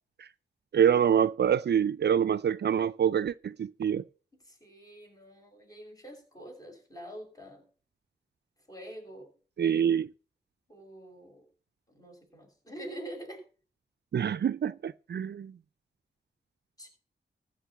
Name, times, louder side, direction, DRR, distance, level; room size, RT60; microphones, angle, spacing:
voice 1, 0.7-4.0 9.6-10.1 14.1-15.5, right 8 dB, 60° right, 0.5 m, -26 dB
voice 2, 4.4-7.6 8.7-9.3 10.7-11.5 11.9-13.4 16.8-16.9, right 1 dB, 20° left, 6.5 m, -45 dB
14.5 x 6.4 x 6.0 m
cardioid pair, 65°, 19 cm